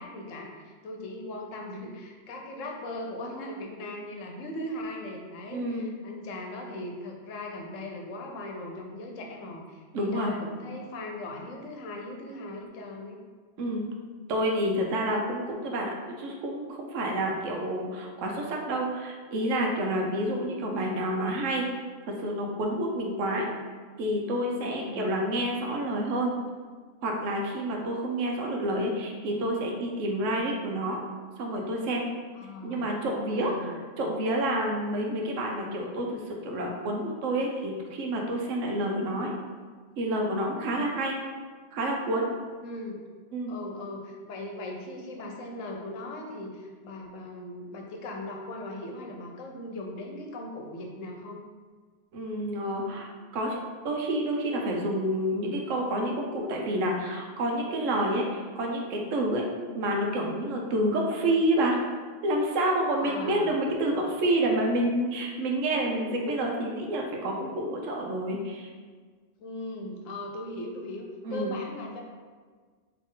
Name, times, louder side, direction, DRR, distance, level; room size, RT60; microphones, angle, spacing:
voice 1, 0.0-13.2 24.6-25.1 32.3-32.9 33.3-33.8 42.6-43.0 43.5-51.5 63.0-63.5 69.4-72.0, left 1 dB, 80° left, 1 dB, 1.1 m, -39 dB
voice 2, 5.5-5.9 9.9-10.3 13.6-13.9 14.3-21.7 22.1-23.5 24.0-26.3 27.0-31.0 31.4-32.0 32.6-39.3 40.0-41.1 41.7-42.3 43.3-43.6 52.1-59.5 59.7-61.8 62.2-68.7 71.2-71.6, right 1 dB, 80° right, 0 dB, 1.0 m, -29 dB
4.1 x 3.0 x 3.8 m, 1.5 s
omnidirectional pair, 1.3 m